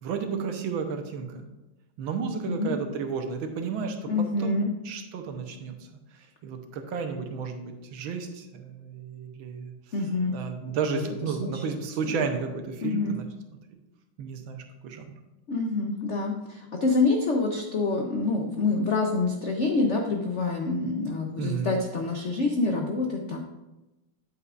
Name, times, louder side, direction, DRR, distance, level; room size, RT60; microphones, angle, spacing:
voice 1, 0.0-1.4 2.0-13.3 14.2-15.1 21.4-21.8, right 5 dB, 75° right, 5 dB, 1.6 m, -33 dB
voice 2, 4.1-4.7 9.9-10.4 11.4-11.6 12.0-12.2 12.8-13.2 15.5-23.4, left 3 dB, 85° left, 2 dB, 0.6 m, -26 dB
9.4 x 8.2 x 2.4 m, 1.0 s
omnidirectional pair, 2.3 m